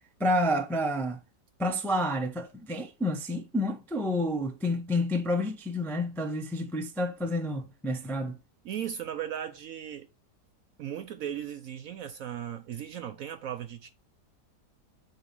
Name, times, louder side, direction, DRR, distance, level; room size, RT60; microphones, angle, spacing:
voice 1, 0.2-1.2 1.6-8.4, left 1 dB, 5° left, 0.4 m, -29 dB
voice 2, 8.6-10.1 10.8-13.9, right 10 dB, 65° right, 0.8 m, -37 dB
7.8 x 2.7 x 5.2 m
omnidirectional pair, 1.8 m